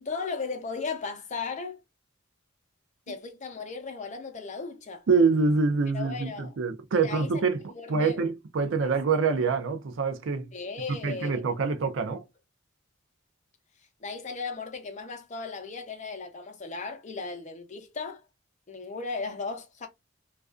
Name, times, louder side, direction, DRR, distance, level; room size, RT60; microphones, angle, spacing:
voice 1, 0.0-1.8 3.1-5.0 5.9-6.5 7.0-7.4 7.7-8.2 8.8-8.9 10.5-11.4 14.0-18.2 18.7-19.9, left 4 dB, 35° left, 0.5 m, -36 dB
voice 2, 5.1-7.6 7.9-10.5 11.0-12.2, right 4 dB, 65° right, 0.4 m, -25 dB
2.4 x 2.2 x 2.3 m
head